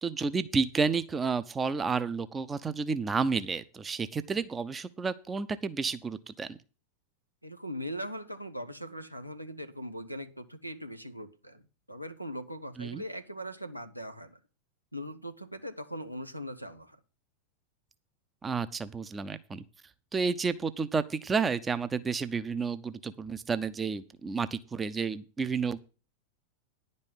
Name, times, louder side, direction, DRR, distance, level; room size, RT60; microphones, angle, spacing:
voice 1, 0.0-6.6 12.8-13.0 18.4-19.6 20.1-25.8, right 5 dB, 15° right, 0.6 m, -31 dB
voice 2, 7.4-14.4 14.9-17.0, equal, 90° right, 1.0 m, -40 dB
10.5 x 5.4 x 7.9 m
figure-of-eight pair, 90°, 0 cm